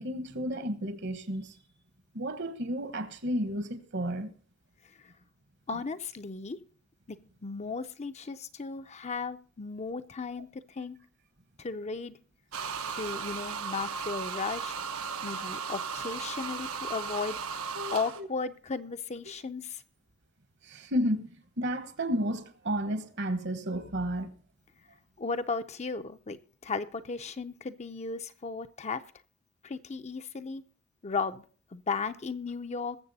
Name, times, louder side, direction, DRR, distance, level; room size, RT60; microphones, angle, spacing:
voice 1, 0.0-1.5 2.1-4.3 15.2-15.5 17.7-18.3 20.6-24.3, equal, 55° right, 1.2 m, -32 dB
voice 2, 5.7-6.6 7.1-11.0 11.6-12.2 12.9-14.7 15.2-17.7 17.9-19.8 25.2-29.0 29.6-30.6 31.0-31.4 31.7-33.0, left 4 dB, 30° left, 0.6 m, -35 dB
sound 1, 12.5-18.2, right 6 dB, 85° right, 1.1 m, -36 dB
21.5 x 7.4 x 4.1 m
head